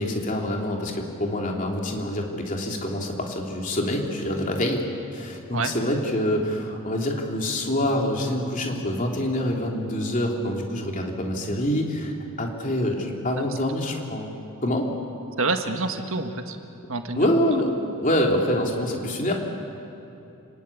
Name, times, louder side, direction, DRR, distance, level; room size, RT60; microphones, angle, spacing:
voice 1, 0.0-4.8 5.1-12.1 12.4-14.3 14.6-14.9 17.2-17.7 18.0-19.3, left 1 dB, 35° left, 1 dB, 3.1 m, -26 dB
voice 2, 15.4-16.6 16.9-17.3, right 3 dB, 65° right, 6 dB, 1.8 m, -27 dB
28.5 x 19.5 x 8.7 m, 2.8 s
head